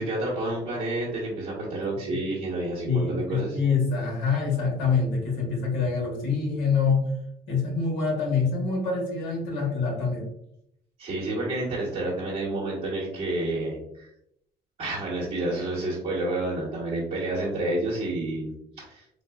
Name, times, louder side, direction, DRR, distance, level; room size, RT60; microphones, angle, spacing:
voice 1, 0.0-3.6 11.0-14.1 14.8-19.0, right 2 dB, 40° right, -6 dB, 1.0 m, -29 dB
voice 2, 2.8-7.1 7.5-10.2, left 5 dB, 85° left, -1 dB, 1.3 m, -25 dB
3.9 x 2.3 x 2.3 m, 0.77 s
cardioid pair, 110°, 17 cm